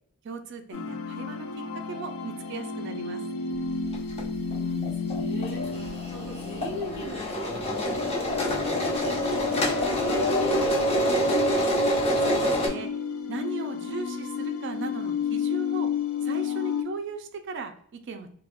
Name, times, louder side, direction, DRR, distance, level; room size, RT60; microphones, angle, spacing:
voice 1, 0.2-3.2 12.2-12.9 13.3-15.9 16.2-18.3, right 4 dB, 60° right, 7 dB, 0.4 m, -37 dB
sound 1, 0.7-16.8, left 6 dB, 90° left, 0.4 m, -32 dB
sound 2, 3.9-4.2 4.5-4.6 4.8-12.7, equal, 30° left, 0.6 m, -26 dB
voice 2, 4.4-11.8, equal, 60° left, -2 dB, 1.2 m, -40 dB
3.4 x 2.3 x 2.2 m, 0.62 s
head